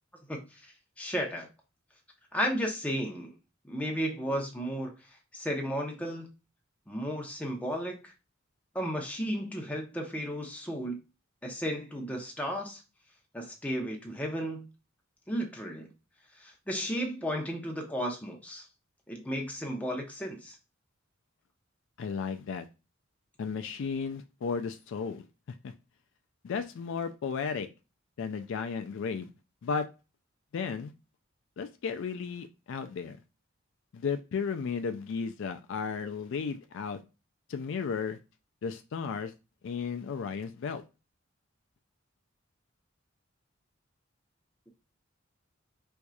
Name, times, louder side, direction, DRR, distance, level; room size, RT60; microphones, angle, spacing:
voice 1, 0.3-0.6 1.0-1.5 2.3-3.3 3.6-4.9 5.3-6.3 6.9-8.1 8.7-11.0 11.4-12.8 13.3-14.7 15.3-15.9 16.4-18.6 19.1-20.6, equal, 5° left, 0 dB, 0.8 m, -34 dB
voice 2, 22.0-22.7 23.4-25.3 25.6-25.7 26.4-27.7 28.2-29.3 29.6-29.9 30.5-30.9 31.6-33.2 33.9-37.0 37.5-38.2 38.6-39.3 39.6-40.8, left 5 dB, 65° left, 8 dB, 0.4 m, -34 dB
4.5 x 2.6 x 2.3 m, 0.29 s
head